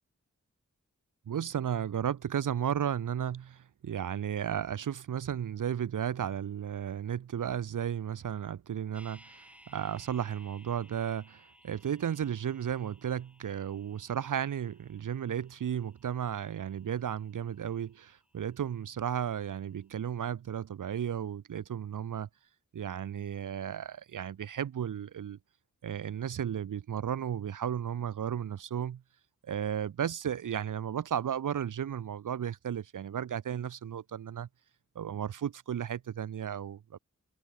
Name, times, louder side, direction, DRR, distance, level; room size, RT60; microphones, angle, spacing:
voice 1, 1.3-22.3 22.7-25.4 25.8-29.0 29.4-34.5 35.0-37.0, right 9 dB, 75° right, 0.5 m, -34 dB
sound 1, 8.9-19.0 19.3-19.4, equal, 5° right, 6.2 m, -61 dB
wide cardioid pair, 45°, 31 cm